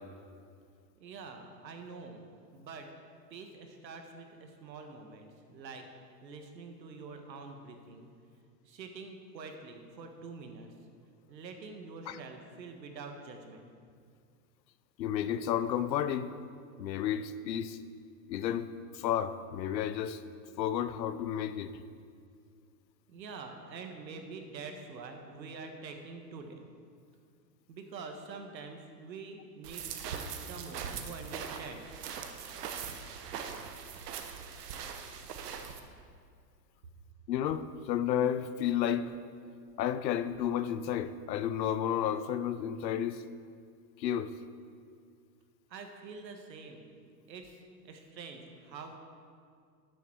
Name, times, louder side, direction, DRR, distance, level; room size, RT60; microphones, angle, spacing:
voice 1, 1.0-2.2 2.5-2.9 3.3-5.8 6.2-8.1 8.7-10.7 11.3-13.7 23.1-26.6 27.7-31.9 45.7-46.8 47.3-47.6 47.9-49.0, right 4 dB, 90° right, 5 dB, 1.6 m, -46 dB
voice 2, 15.0-16.3 16.8-17.8 18.3-18.7 18.9-20.2 20.6-21.7 37.3-39.1 39.8-43.2 44.0-44.3, left 10 dB, 85° left, 13 dB, 0.8 m, -31 dB
sound 1, 29.6-35.8, right 7 dB, 70° right, 1.1 m, -41 dB
12.0 x 7.2 x 4.6 m, 2.2 s
hypercardioid pair, 150°, 50 cm